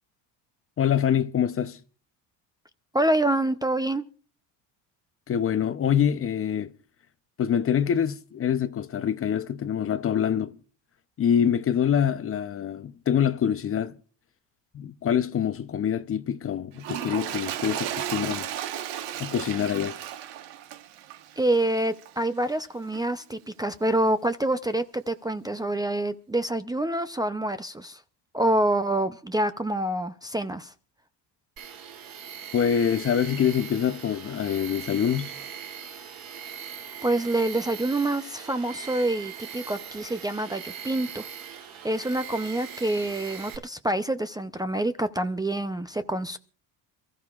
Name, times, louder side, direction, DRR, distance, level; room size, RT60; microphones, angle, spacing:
voice 1, 0.8-1.8 5.3-6.7 7.4-10.6 11.2-13.9 14.7-18.5 19.2-20.0 32.5-35.3, left 8 dB, 30° left, 0.7 m, -25 dB
voice 2, 2.9-4.0 21.4-28.0 28.3-30.7 37.0-41.2 41.8-46.4, right 1 dB, 10° right, 0.5 m, -26 dB
Toilet flush, 16.7-22.2 22.9-23.0, right 11 dB, 75° right, 1.3 m, -35 dB
Tools, 31.6-43.6, right 8 dB, 55° right, 3.0 m, -40 dB
28.0 x 14.0 x 2.4 m
cardioid pair, 115°, 42 cm